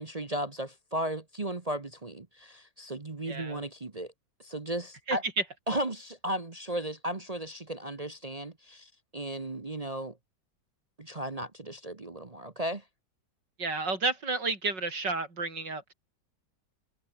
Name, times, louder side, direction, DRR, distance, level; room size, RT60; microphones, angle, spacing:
voice 1, 0.0-4.1 4.4-5.2 5.7-10.2 11.0-12.8, right 1 dB, 25° right, 1.1 m, -35 dB
voice 2, 3.3-3.6 5.1-5.2 13.6-15.9, right 3 dB, 90° right, 5.5 m, -31 dB
omnidirectional pair, 1.9 m